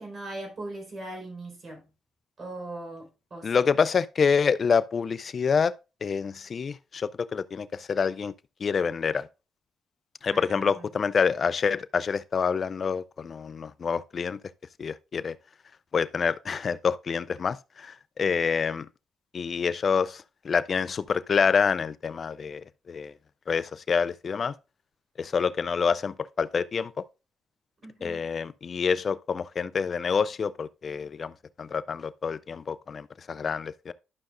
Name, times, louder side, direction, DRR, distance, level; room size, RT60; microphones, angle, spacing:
voice 1, 0.0-1.9 2.4-3.6 10.3-11.0 27.8-28.3, right 2 dB, 40° right, 4.4 m, -40 dB
voice 2, 3.4-5.7 6.0-8.3 8.6-9.3 10.2-14.4 14.8-15.4 15.9-18.9 19.3-22.6 22.9-23.1 23.5-24.5 25.2-26.9 28.0-31.3 31.6-33.9, left 6 dB, 45° left, 0.3 m, -27 dB
11.5 x 6.3 x 2.5 m
cardioid pair, 90°, 0 cm